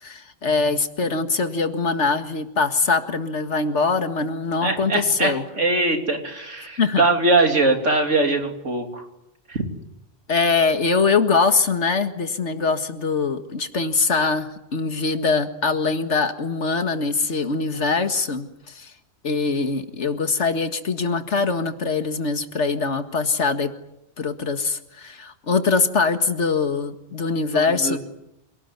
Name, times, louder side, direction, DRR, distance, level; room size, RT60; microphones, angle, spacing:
voice 1, 0.0-5.4 6.8-7.0 10.3-18.9 19.2-23.7 24.2-28.0, left 4 dB, 70° left, 8 dB, 2.1 m, -23 dB
voice 2, 4.6-9.1 9.5-9.6 27.5-28.0, right 2 dB, 85° right, 4 dB, 3.6 m, -22 dB
27.5 x 19.0 x 9.5 m, 0.86 s
omnidirectional pair, 1.2 m